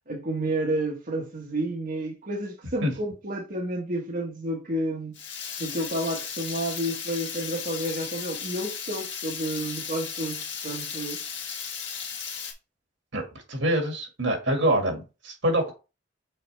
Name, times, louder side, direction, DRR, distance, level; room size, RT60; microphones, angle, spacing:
voice 1, 0.1-5.2 5.6-11.2, right 1 dB, 50° right, 1.3 m, -30 dB
Water tap faucet / Liquid, 5.1-12.5, left 7 dB, 70° left, 1.8 m, -35 dB
voice 2, 13.1-15.7, right 1 dB, 75° right, 2.1 m, -25 dB
6.7 x 4.2 x 3.4 m
head